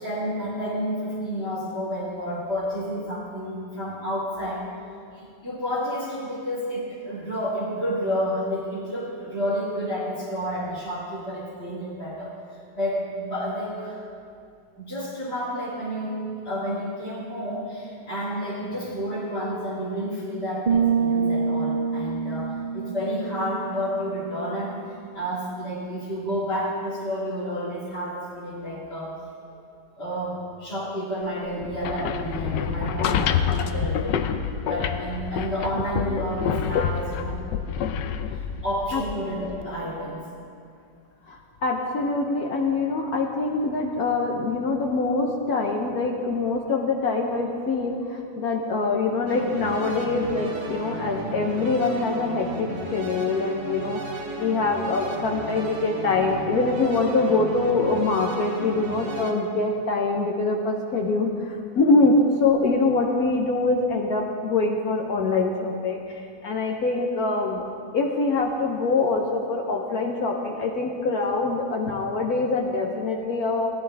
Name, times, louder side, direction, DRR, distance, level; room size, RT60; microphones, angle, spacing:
voice 1, 0.0-4.6 5.1-12.3 12.7-14.0 14.8-24.8 25.1-29.1 30.0-34.2 34.6-37.4 38.3-40.3, equal, 35° left, -10 dB, 2.6 m, -30 dB
sound 1, 20.7-24.4, right 6 dB, 50° right, 0.6 m, -26 dB
sound 2, 31.6-39.6, left 8 dB, 80° left, 1.3 m, -27 dB
voice 2, 41.3-66.0 66.4-67.6 67.9-73.7, left 3 dB, 60° left, 1 dB, 1.3 m, -24 dB
sound 3, 49.3-59.3, right 2 dB, 80° right, 2.1 m, -34 dB
17.0 x 11.0 x 3.4 m, 2.4 s
omnidirectional pair, 1.9 m